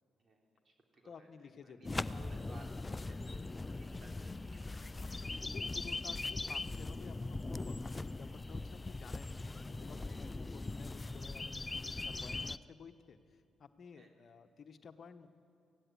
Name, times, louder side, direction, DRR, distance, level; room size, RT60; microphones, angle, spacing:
voice 1, 0.2-2.7 3.0-3.5 3.8-5.1 13.9-14.1, right 2 dB, 40° right, 1 dB, 3.4 m, -59 dB
voice 2, 1.0-2.0 2.5-2.6 5.0-15.3, left 6 dB, 55° left, 10 dB, 1.1 m, -54 dB
sound 1, 1.8-12.6, left 2 dB, 25° left, 0.5 m, -40 dB
19.0 x 15.0 x 9.6 m, 2.4 s
hypercardioid pair, 45°, 0 cm